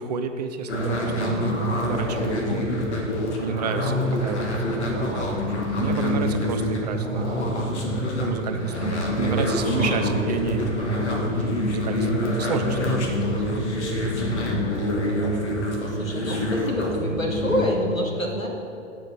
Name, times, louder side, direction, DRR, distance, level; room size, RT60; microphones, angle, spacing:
voice 1, 0.0-7.6 8.0-13.4, right 6 dB, 35° right, 7 dB, 0.5 m, -31 dB
sound 1, 0.7-17.7, left 1 dB, 60° left, 1.7 m, -26 dB
voice 2, 9.6-10.0 16.0-18.5, equal, 90° left, 0 dB, 1.8 m, -27 dB
8.4 x 4.9 x 7.3 m, 2.5 s
figure-of-eight pair, 110°, 39 cm